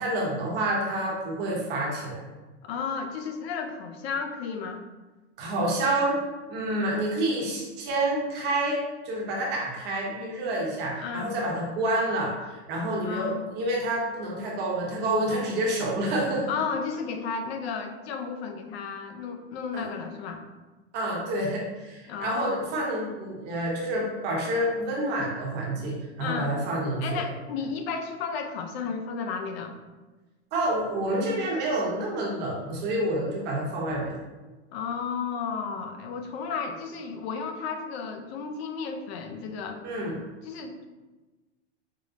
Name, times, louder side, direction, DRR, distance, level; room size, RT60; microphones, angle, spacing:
voice 1, 0.0-2.2 5.4-6.2 6.5-8.8 9.0-16.5 19.7-19.9 20.9-27.2 30.5-34.2 39.8-40.2, right 1 dB, 30° right, -3 dB, 0.8 m, -28 dB
voice 2, 2.6-4.8 11.0-11.3 13.0-13.4 16.5-20.4 22.1-22.6 26.2-26.6 27.0-29.7 34.7-39.8 40.4-40.9, left 5 dB, 60° left, 5 dB, 0.5 m, -33 dB
4.8 x 2.0 x 2.5 m, 1.2 s
supercardioid pair, 150°, 35 cm